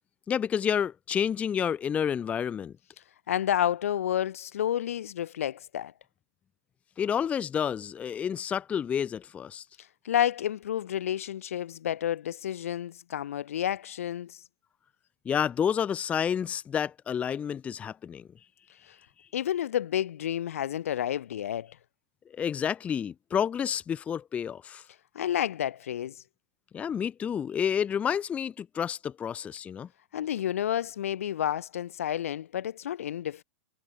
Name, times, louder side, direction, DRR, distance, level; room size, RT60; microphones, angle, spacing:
voice 1, 0.3-2.7 7.0-9.6 15.3-18.2 22.3-24.8 26.7-29.9, left 8 dB, 15° left, 0.4 m, -29 dB
voice 2, 3.3-5.9 10.0-14.4 18.9-19.0 19.3-21.8 25.1-26.2 30.1-33.4, left 10 dB, 75° left, 1.0 m, -30 dB
hypercardioid pair, 125°, 8 cm